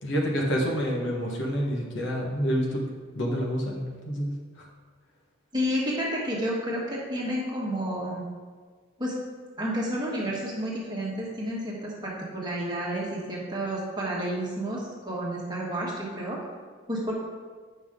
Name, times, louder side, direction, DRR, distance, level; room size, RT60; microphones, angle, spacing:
voice 1, 0.0-2.8 3.1-4.7, equal, 60° left, -2 dB, 1.4 m, -28 dB
voice 2, 5.5-8.3 9.0-9.2 9.6-16.4 16.9-17.1, equal, 20° right, -4 dB, 1.5 m, -30 dB
9.4 x 5.8 x 3.7 m, 1.5 s
head